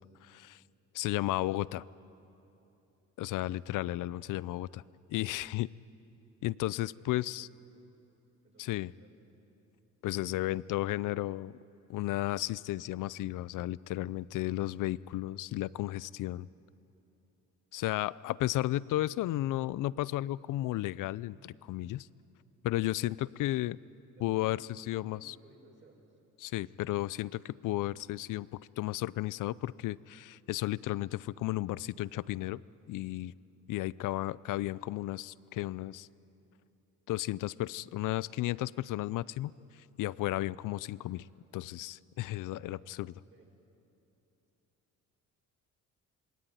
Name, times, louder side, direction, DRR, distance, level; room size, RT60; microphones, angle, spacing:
voice 1, 0.2-0.6 0.9-1.8 3.2-4.8 5.1-5.7 6.4-7.5 8.6-8.9 10.0-11.6 11.9-16.5 17.7-22.1 22.6-23.8 24.2-25.3 26.4-32.6 32.9-33.3 33.7-36.1 37.1-39.5 40.0-41.3 41.5-43.1, left 16 dB, 75° left, 20 dB, 0.6 m, -33 dB
voice 2, 3.2-3.6 6.7-6.9 7.2-7.7 8.4-9.1 23.2-23.3 24.2-26.2 42.4-42.9 43.3-43.5, right 2 dB, 40° right, 0 dB, 6.3 m, -61 dB
26.5 x 21.0 x 9.5 m, 2.9 s
cardioid pair, 120°, 31 cm